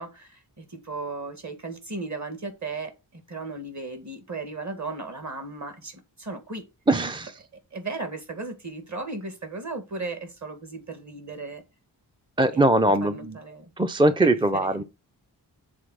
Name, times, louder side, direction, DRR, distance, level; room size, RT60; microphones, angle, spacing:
voice 1, 0.0-6.6 7.7-11.6 12.5-13.7 14.2-14.8, right 3 dB, 40° right, 1.9 m, -36 dB
voice 2, 6.9-7.3 12.4-13.4 13.8-14.8, right 1 dB, 10° right, 0.5 m, -21 dB
7.3 x 4.0 x 6.2 m
wide cardioid pair, 115°, 41 cm